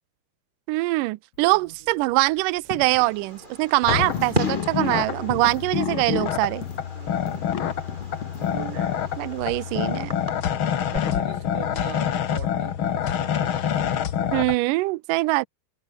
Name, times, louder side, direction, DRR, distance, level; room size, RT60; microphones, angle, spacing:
voice 1, 0.7-6.7 8.5-8.8 9.2-10.1 14.3-15.5, right 22 dB, 85° right, 1.9 m, -23 dB
Coin (dropping), 1.3-9.9, left 9 dB, 50° left, 2.2 m, -40 dB
voice 2, 1.5-2.0 6.9-7.7 8.4-9.8 10.6-14.5, right 9 dB, 60° right, 3.6 m, -44 dB
Fireworks, 3.0-11.0, right 1 dB, 10° right, 7.0 m, -37 dB
sound 1, 3.8-14.5, left 9 dB, 75° left, 1.1 m, -27 dB
omnidirectional pair, 4.5 m